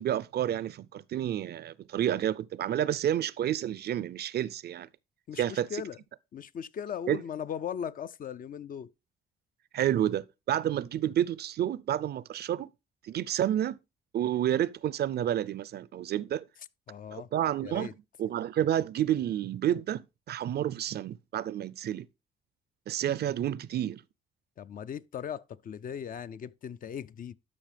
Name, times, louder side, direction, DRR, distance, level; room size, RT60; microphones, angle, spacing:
voice 1, 0.0-4.9 5.4-5.8 7.1-7.2 9.7-12.7 13.0-13.8 14.1-16.4 17.1-17.9 18.2-22.1 22.9-24.0, right 11 dB, 55° right, 0.4 m, -30 dB
voice 2, 5.3-6.0 6.3-8.9 16.9-17.3 17.6-17.9 24.6-27.4, left 8 dB, 45° left, 0.4 m, -38 dB
12.0 x 5.4 x 3.3 m
cardioid pair, 90°, 20 cm